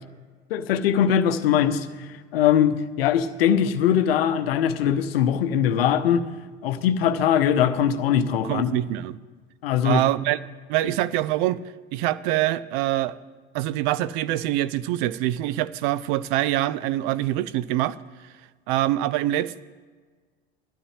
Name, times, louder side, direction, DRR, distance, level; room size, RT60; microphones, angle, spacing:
voice 1, 0.5-6.2 6.6-8.7 9.6-10.0, left 9 dB, 65° left, 0.9 m, -21 dB
voice 2, 8.4-9.1 9.8-10.4 10.7-11.6 11.9-13.2 13.5-18.0 18.7-19.6, right 14 dB, 50° right, 0.5 m, -24 dB
18.0 x 12.5 x 3.4 m
figure-of-eight pair, 70°, 32 cm